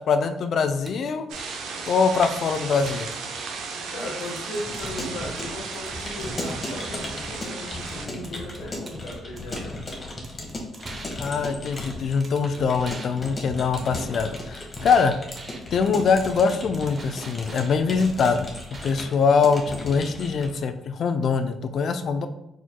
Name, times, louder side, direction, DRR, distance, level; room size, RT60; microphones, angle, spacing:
voice 1, 0.1-1.3 1.9-3.1 11.2-15.2 15.7-18.5 18.8-22.3, left 5 dB, 60° left, 9 dB, 0.4 m, -23 dB
sound 1, 0.8-1.0 1.3-1.6 1.9-2.0 2.2-3.6 4.0-5.0 5.4-6.5 7.9-8.0 8.2-9.9 10.2-13.1 13.4-19.1, right 3 dB, 40° right, 0.7 m, -44 dB
sound 2, 1.3-8.1, right 4 dB, 85° right, 0.6 m, -35 dB
voice 2, 3.9-9.8 15.8-16.0, left 1 dB, 85° left, -6 dB, 1.1 m, -37 dB
Keyboard (musical) / Computer keyboard, 4.5-20.6, left 1 dB, 30° left, 1.2 m, -36 dB
4.5 x 4.4 x 2.2 m, 0.90 s
cardioid pair, 90°, 0 cm